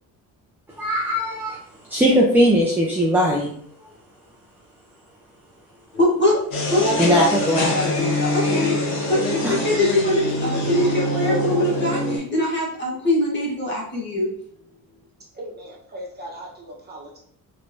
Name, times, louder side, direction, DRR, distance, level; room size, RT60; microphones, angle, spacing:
voice 1, 0.8-1.6 1.9-3.5 7.0-8.0 9.4-9.6, equal, 5° right, -3 dB, 0.5 m, -19 dB
voice 2, 5.9-6.9 8.3-14.3, left 1 dB, 30° left, -3 dB, 1.2 m, -22 dB
sound 1, 6.5-12.2, left 1 dB, 85° left, 1.0 m, -24 dB
voice 3, 15.3-17.2, equal, 30° right, -3 dB, 1.0 m, -38 dB
3.4 x 3.2 x 2.6 m, 0.63 s
cardioid pair, 135°, 35 cm